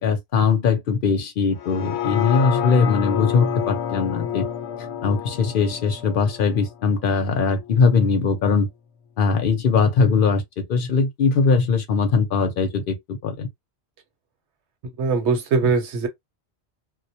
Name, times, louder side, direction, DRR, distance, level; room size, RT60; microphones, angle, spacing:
voice 1, 0.0-4.4 5.0-8.7 9.2-10.4 10.7-13.5, left 5 dB, 60° left, 0.7 m, -20 dB
sound 1, 1.6-7.7 8.1-8.2, left 9 dB, 85° left, 0.9 m, -29 dB
voice 2, 15.0-16.1, right 4 dB, 80° right, 1.0 m, -21 dB
2.2 x 2.1 x 2.7 m
omnidirectional pair, 1.1 m